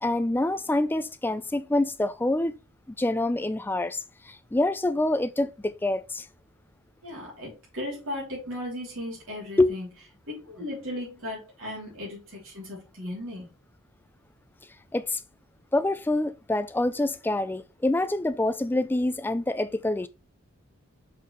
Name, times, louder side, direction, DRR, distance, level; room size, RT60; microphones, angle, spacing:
voice 1, 0.0-2.6 3.0-6.3 9.6-9.8 14.9-15.2 15.7-20.1, left 2 dB, 10° left, 0.3 m, -26 dB
voice 2, 7.0-9.9 10.3-13.5, left 1 dB, 60° right, 3.5 m, -36 dB
6.6 x 5.3 x 3.3 m
head